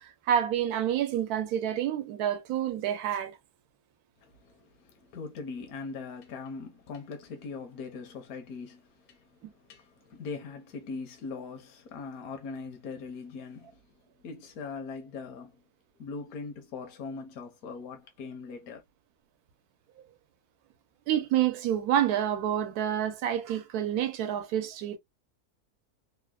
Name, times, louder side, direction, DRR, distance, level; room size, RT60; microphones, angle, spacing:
voice 1, 0.0-3.4 9.4-9.5 21.1-25.0, right 10 dB, 80° right, 1.1 m, -28 dB
voice 2, 4.2-13.8 14.2-15.6 16.0-18.8, left 4 dB, 70° left, 1.2 m, -41 dB
3.3 x 2.0 x 2.2 m
omnidirectional pair, 1.6 m